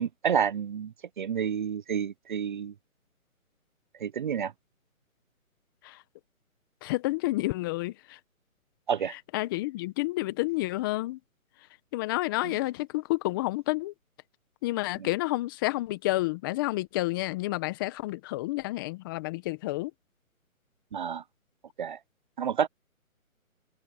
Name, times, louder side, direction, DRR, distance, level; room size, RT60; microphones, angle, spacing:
voice 1, 0.0-2.7 4.0-4.5 8.9-9.1 12.4-12.5 15.0-15.1 20.9-21.2 21.8-22.0 22.4-22.7, right 7 dB, 35° right, 1.2 m, -29 dB
voice 2, 6.8-8.2 9.3-11.2 11.9-13.9 14.6-19.9, left 19 dB, 15° left, 1.3 m, -30 dB
open air
figure-of-eight pair, 150°, 42 cm